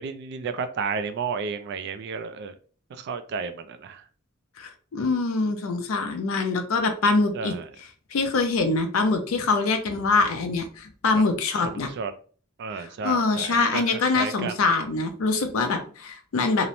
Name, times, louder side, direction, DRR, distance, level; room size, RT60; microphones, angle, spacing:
voice 1, 0.0-2.6 2.9-4.0 7.3-7.7 11.2-11.3 11.6-12.1 12.6-14.6, right 5 dB, 55° right, 10 dB, 0.3 m, -32 dB
voice 2, 4.6-7.5 8.1-11.9 12.8-16.7, left 3 dB, 80° left, 6 dB, 0.4 m, -24 dB
2.9 x 2.0 x 2.5 m, 0.41 s
head